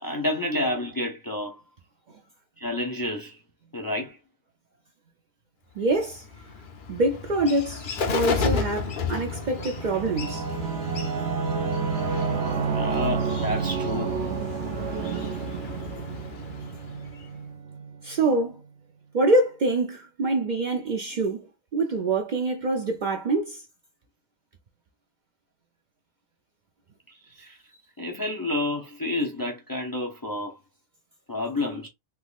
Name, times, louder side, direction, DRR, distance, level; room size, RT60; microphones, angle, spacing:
voice 1, 0.0-1.6 2.6-3.4 3.7-4.2 12.7-14.2 27.1-27.6 28.0-30.6 31.3-31.9, left 1 dB, 25° left, 0.5 m, -30 dB
voice 2, 5.8-6.2 6.9-7.9 8.1-10.4 18.0-18.6 19.1-21.4 21.7-23.6, right 2 dB, 55° right, 0.6 m, -25 dB
Bird, 5.9-17.4, left 5 dB, 55° left, 0.7 m, -33 dB
Singing / Musical instrument, 9.2-18.4, right 6 dB, 70° right, 0.9 m, -30 dB
3.5 x 3.0 x 2.4 m
omnidirectional pair, 1.2 m